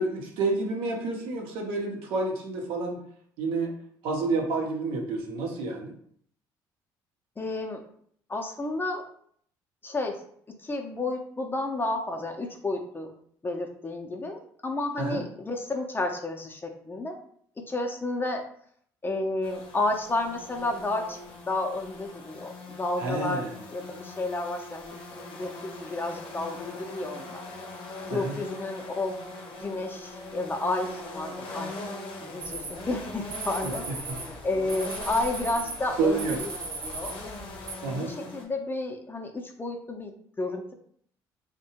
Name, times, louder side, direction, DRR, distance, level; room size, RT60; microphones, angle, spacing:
voice 1, 0.0-3.0 3.4-3.7 4.0-5.9 15.0-15.2 23.0-23.6 28.1-28.3 33.6-33.7 36.0-36.4 37.8-38.1, right 3 dB, 80° right, 1 dB, 0.7 m, -29 dB
voice 2, 7.4-7.8 8.3-9.0 9.8-10.1 10.6-13.1 13.4-17.1 17.7-18.4 19.0-21.2 21.5-23.4 23.7-27.4 28.1-29.1 29.6-31.7 32.2-36.5 36.8-37.1 37.9-40.7, left 2 dB, 20° left, 3 dB, 0.5 m, -31 dB
sound 1, 19.4-38.4, left 2 dB, 65° left, 0.6 m, -41 dB
sound 2, 32.4-37.7, right 3 dB, 55° right, 0.8 m, -38 dB
2.7 x 2.2 x 2.8 m, 0.62 s
supercardioid pair, 70°, 9 cm